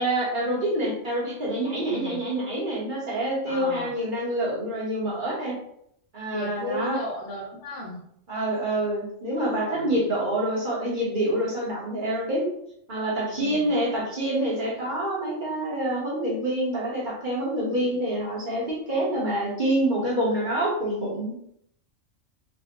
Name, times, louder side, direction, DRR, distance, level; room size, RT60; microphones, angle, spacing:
voice 1, 0.0-5.5 6.1-7.0 8.3-12.4 12.9-21.3, right 1 dB, 40° right, -6 dB, 1.5 m, -27 dB
voice 2, 1.8-2.3 3.4-3.9 6.3-8.0 9.7-10.3 13.3-13.7 17.7-18.0, left 1 dB, 60° left, -4 dB, 1.1 m, -35 dB
4.8 x 2.3 x 3.0 m, 0.72 s
omnidirectional pair, 1.4 m